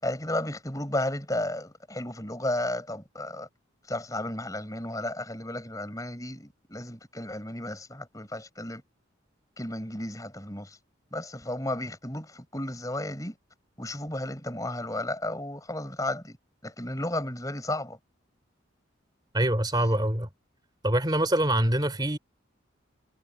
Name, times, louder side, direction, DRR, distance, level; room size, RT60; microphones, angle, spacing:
voice 1, 0.0-3.5 3.9-8.8 9.6-10.8 11.1-13.4 13.8-16.4 16.6-18.0, left 1 dB, 15° left, 5.6 m, -33 dB
voice 2, 19.3-20.3 20.8-22.2, right 1 dB, 20° right, 3.2 m, -24 dB
head